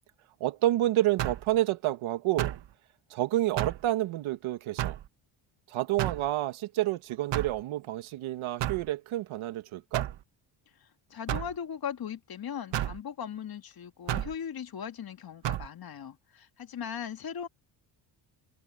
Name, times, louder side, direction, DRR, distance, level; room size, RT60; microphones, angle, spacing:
voice 1, 0.4-2.5 3.1-5.0 5.7-10.1, right 15 dB, 85° right, 2.0 m, -29 dB
sound 1, 1.2-1.5 2.4-2.7 3.6-3.9 4.8-5.1 6.0-6.3 7.3-7.6 8.6-8.9 9.9-10.2 11.3-11.5 12.7-13.0 14.1-14.3 15.4-15.7, right 12 dB, 60° right, 1.5 m, -31 dB
voice 2, 10.8-17.5, left 8 dB, 50° left, 2.2 m, -39 dB
cardioid pair, 95°, 47 cm